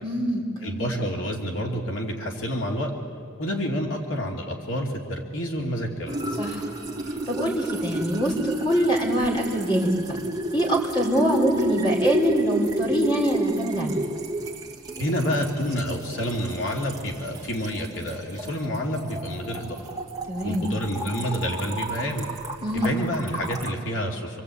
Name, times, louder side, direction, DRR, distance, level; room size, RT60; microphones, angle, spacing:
voice 1, 0.0-0.8 6.4-6.6 7.3-9.9 10.5-14.0 20.3-20.7 22.6-22.9, right 1 dB, 25° left, 0 dB, 4.3 m, -24 dB
voice 2, 0.6-2.9 3.4-6.2 15.0-20.0 20.4-22.3 22.7-24.4, equal, 75° left, -1 dB, 2.9 m, -28 dB
sound 1, 6.1-23.7, right 1 dB, 20° right, 2.0 m, -31 dB
26.5 x 25.5 x 8.5 m, 2.1 s
head